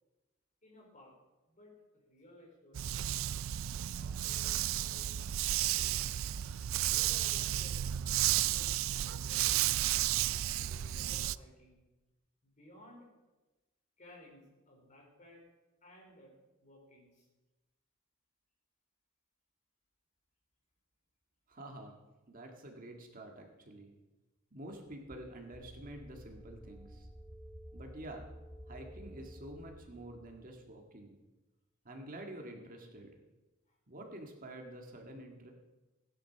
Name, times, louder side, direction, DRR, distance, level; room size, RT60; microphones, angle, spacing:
voice 1, 0.6-1.1 1.5-1.7 2.1-3.1 3.9-6.0 6.7-10.1 10.6-11.8 12.4-13.1 14.0-15.4 15.8-17.3 33.7-33.8, left 1 dB, 40° left, -1 dB, 4.7 m, -58 dB
Dog, 2.7-11.4, right 13 dB, 75° right, 0.4 m, -32 dB
voice 2, 21.5-22.0 22.3-23.9 24.5-27.1 27.7-28.3 28.7-31.2 31.9-33.1 33.9-35.5, right 1 dB, 45° right, 2 dB, 1.9 m, -48 dB
sound 1, 25.5-30.5, equal, 10° right, 2.7 m, -51 dB
17.0 x 10.5 x 5.8 m, 1.1 s
head